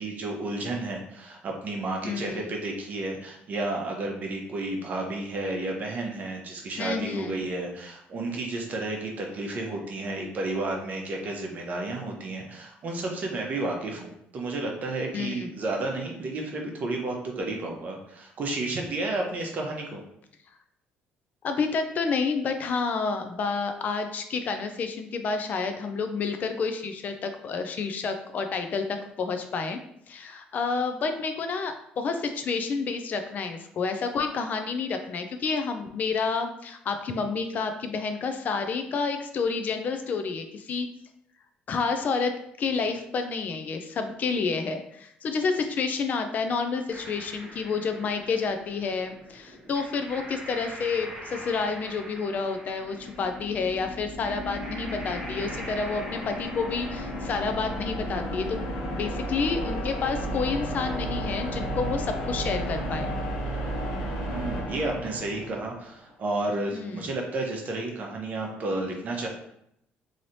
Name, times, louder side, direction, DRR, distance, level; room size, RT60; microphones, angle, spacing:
voice 1, 0.0-20.0 64.3-69.3, right 2 dB, 45° right, 1 dB, 0.8 m, -32 dB
voice 2, 2.0-2.4 6.8-7.3 15.1-15.5 21.4-29.8 30.1-40.9 41.7-58.7 58.9-63.1 66.7-67.0, left 4 dB, 50° left, 7 dB, 0.4 m, -29 dB
sound 1, 46.9-58.1, equal, 15° right, 0.9 m, -43 dB
sound 2, 52.8-65.9, equal, 85° left, 0.9 m, -33 dB
3.1 x 2.8 x 2.7 m, 0.74 s
cardioid pair, 105°, 4 cm